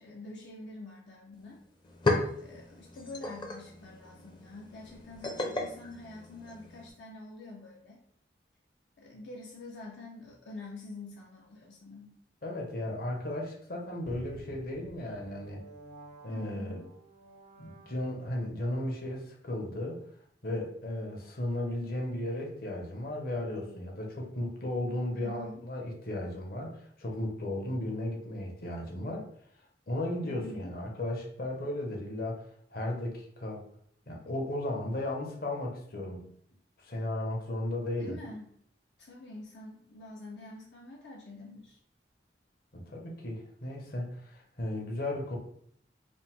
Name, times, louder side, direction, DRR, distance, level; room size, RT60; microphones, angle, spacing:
voice 1, 0.0-1.6 2.4-8.0 9.0-12.2 16.3-16.9 25.1-25.6 30.2-30.8 38.0-38.5 39.0-41.8, left 2 dB, 80° left, -2 dB, 0.7 m, -46 dB
sound 1, 1.3-1.4 1.7-6.9, left 2 dB, 25° left, 0.5 m, -35 dB
voice 2, 12.4-15.6 16.2-16.8 17.6-20.0 20.4-26.7 27.0-29.2 29.9-33.6 34.1-36.3 36.8-38.1 42.7-45.4, left 1 dB, 55° left, 0 dB, 1.0 m, -35 dB
sound 2, 14.1-18.5, right 2 dB, 45° right, 0.4 m, -51 dB
5.1 x 2.1 x 3.5 m, 0.64 s
head